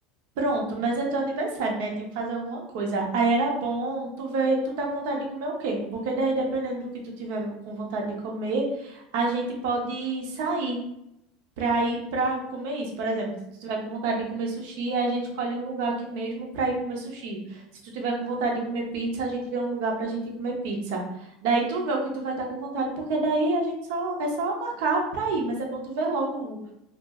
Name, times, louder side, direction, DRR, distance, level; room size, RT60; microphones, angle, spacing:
voice 1, 0.4-6.9 7.2-10.8 11.6-13.3 13.6-26.6, right 3 dB, 70° right, 0 dB, 0.7 m, -28 dB
2.5 x 2.1 x 3.4 m, 0.81 s
supercardioid pair, 145°, 0 cm